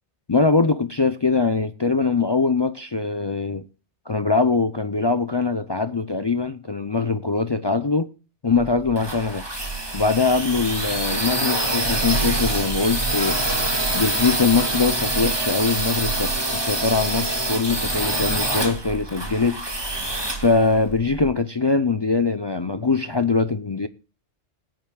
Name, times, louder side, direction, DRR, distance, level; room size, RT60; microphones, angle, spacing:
voice 1, 0.3-3.6 4.1-8.1 8.4-9.5 9.9-13.4 13.9-19.7 20.4-23.9, left 4 dB, 35° left, 0.4 m, -22 dB
sound 1, 8.6-21.3, right 2 dB, 20° right, 2.2 m, -25 dB
20.0 x 10.5 x 2.3 m
omnidirectional pair, 1.2 m